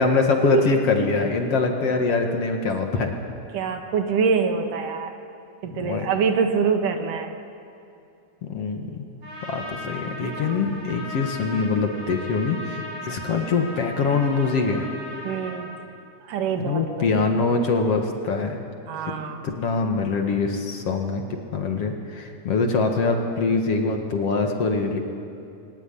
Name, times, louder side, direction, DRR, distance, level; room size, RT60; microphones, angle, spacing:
voice 1, 0.0-3.1 5.6-6.1 8.4-9.1 9.5-14.8 16.6-18.6 19.4-25.0, left 4 dB, 55° left, 3 dB, 2.5 m, -23 dB
voice 2, 3.5-5.1 5.6-7.4 15.2-15.7 16.2-17.2 18.9-19.4, right 6 dB, 80° right, 5 dB, 3.2 m, -25 dB
Trumpet, 9.2-15.7, left 1 dB, 45° right, 9.0 m, -37 dB
22.0 x 17.5 x 10.0 m, 2.6 s
omnidirectional pair, 3.7 m